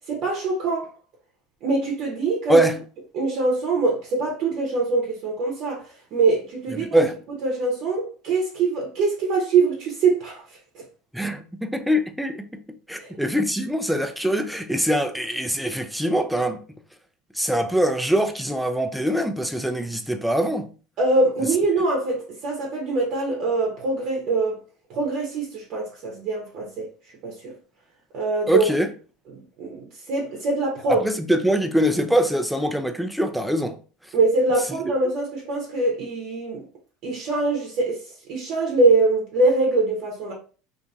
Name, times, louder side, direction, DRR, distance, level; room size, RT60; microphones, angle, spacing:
voice 1, 0.1-0.9 1.6-2.6 3.1-7.0 7.4-10.4 10.7-10.8 12.9-13.1 21.0-24.6 24.9-26.9 27.2-27.5 28.1-28.7 29.3-31.1 34.1-36.6 37.0-38.0 38.3-40.3, right 3 dB, 55° right, 0.8 m, -23 dB
voice 2, 6.8-7.1 11.1-12.5 12.9-16.6 17.3-20.7 28.5-28.9 30.9-33.8, right 1 dB, ahead, 0.4 m, -23 dB
2.7 x 2.6 x 2.4 m
hypercardioid pair, 90°, 0 cm